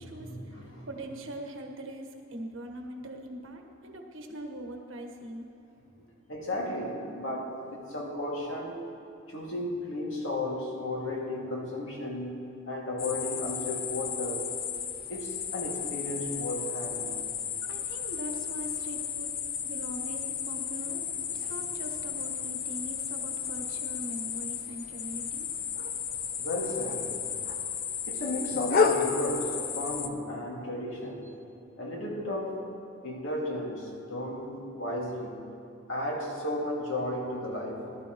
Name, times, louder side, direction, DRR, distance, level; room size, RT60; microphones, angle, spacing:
voice 1, 0.0-0.9 6.3-8.9 9.3-14.5 15.1-17.1 26.4-27.1 28.1-31.3 31.8-32.7 33.0-35.4 35.9-37.9, left 1 dB, 70° left, -2 dB, 2.1 m, -34 dB
voice 2, 0.9-5.5 17.6-19.3 19.6-25.5, right 1 dB, 70° right, 3 dB, 1.3 m, -41 dB
sound 1, 13.0-30.1, left 6 dB, 45° left, 0.6 m, -33 dB
18.5 x 12.0 x 3.0 m, 2.6 s
head